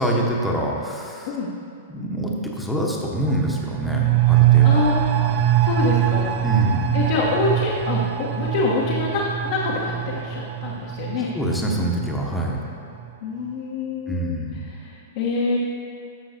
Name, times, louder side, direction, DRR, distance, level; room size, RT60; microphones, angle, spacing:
voice 1, 0.0-1.4 1.9-4.9 6.4-7.0 11.3-12.6 14.1-14.7, right 1 dB, 5° left, -2 dB, 1.0 m, -25 dB
voice 2, 1.3-1.6 4.6-5.0 5.6-6.3 6.9-11.3 13.2-14.4 14.6-15.6, left 3 dB, 50° left, -3 dB, 1.0 m, -25 dB
sound 1, 3.3-12.7 13.0-13.1, right 11 dB, 40° right, 0.4 m, -22 dB
13.5 x 5.8 x 2.7 m, 2.5 s
figure-of-eight pair, 100°, 0 cm